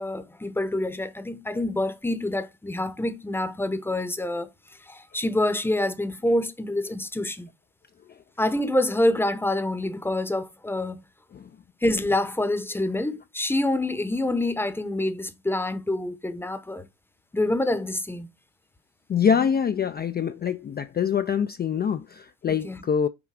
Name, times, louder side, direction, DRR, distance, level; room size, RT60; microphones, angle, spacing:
voice 1, 0.0-4.5 4.9-7.5 8.4-11.0 11.8-16.9 17.3-18.3 22.5-22.8, left 1 dB, 5° left, 0.8 m, -26 dB
voice 2, 19.1-23.1, left 7 dB, 30° left, 0.4 m, -25 dB
5.9 x 3.8 x 4.7 m
cardioid pair, 110°, 35 cm